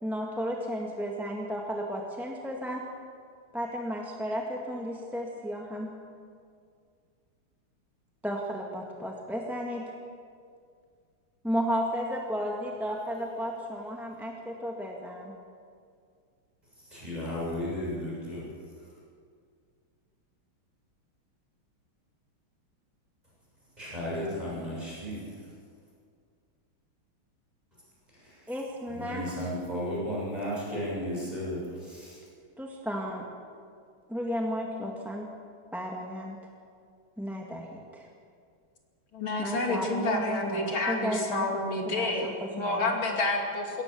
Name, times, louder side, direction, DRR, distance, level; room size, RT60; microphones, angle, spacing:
voice 1, 0.0-2.8 3.5-5.9 8.2-9.8 11.4-15.3 28.5-29.2 32.6-33.3 34.1-35.3 35.7-36.4 37.2-38.1 39.4-42.8, equal, ahead, -1 dB, 1.7 m, -33 dB
voice 2, 16.8-18.4 23.8-25.5 28.1-28.5 28.9-32.2, equal, 20° right, -6 dB, 7.2 m, -34 dB
voice 3, 39.1-43.8, left 2 dB, 70° left, 1 dB, 3.4 m, -29 dB
21.5 x 18.0 x 6.9 m, 2.2 s
omnidirectional pair, 2.3 m